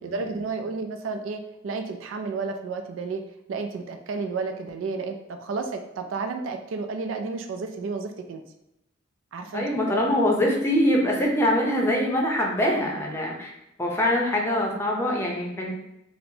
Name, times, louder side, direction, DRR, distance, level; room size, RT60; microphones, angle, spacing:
voice 1, 0.0-3.2 3.5-8.4 9.3-10.0, right 4 dB, 90° right, 6 dB, 0.3 m, -32 dB
voice 2, 9.5-13.5 13.8-15.7, left 1 dB, 15° left, -1 dB, 0.6 m, -23 dB
4.2 x 2.1 x 2.7 m, 0.85 s
head